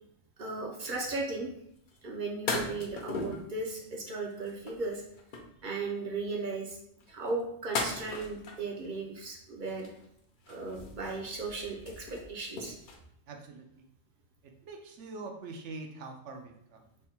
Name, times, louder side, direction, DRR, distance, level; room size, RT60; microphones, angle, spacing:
voice 1, 0.4-1.5 2.0-5.0 5.6-6.8 7.1-9.9 10.5-12.7, right 3 dB, 50° right, 0 dB, 0.6 m, -36 dB
sound 1, 1.9-2.0 2.5-3.5 4.3-5.6 7.0-8.9 9.7-10.2 10.4-13.0, left 3 dB, 55° left, 0.6 m, -38 dB
voice 2, 13.3-13.8 14.4-16.8, right 3 dB, 70° right, 3 dB, 0.9 m, -44 dB
3.5 x 2.1 x 4.2 m, 0.71 s
omnidirectional pair, 1.3 m